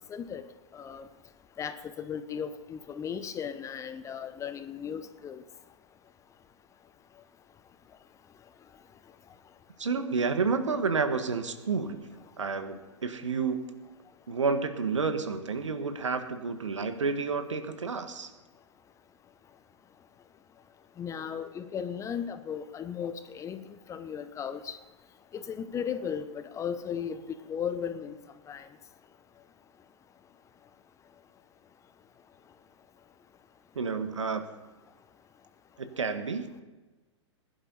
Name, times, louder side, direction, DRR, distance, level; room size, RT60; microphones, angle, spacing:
voice 1, 0.1-0.4 0.7-1.1 1.6-5.4 21.0-23.6 23.9-24.8 25.3-27.2 27.5-28.2 28.5-28.7, left 7 dB, 20° left, 11 dB, 0.9 m, -36 dB
voice 2, 9.8-12.1 12.4-13.6 14.3-18.3 33.7-34.4 35.8-36.6, right 4 dB, 75° right, 9 dB, 1.5 m, -30 dB
20.5 x 11.0 x 4.1 m, 1.2 s
figure-of-eight pair, 105°, 16 cm